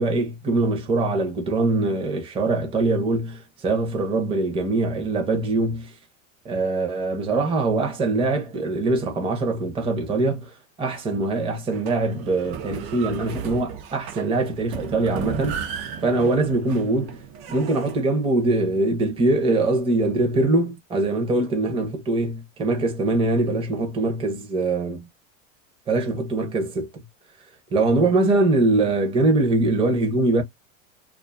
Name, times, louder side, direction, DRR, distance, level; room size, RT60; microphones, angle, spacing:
voice 1, 0.0-5.9 6.4-15.6 16.0-17.2 17.5-25.1 25.9-27.0 27.7-30.4, right 2 dB, 15° right, 0.7 m, -23 dB
sound 1, 11.7-18.0, right 8 dB, 55° right, 0.7 m, -35 dB
2.5 x 2.4 x 2.4 m
supercardioid pair, 135°, 40 cm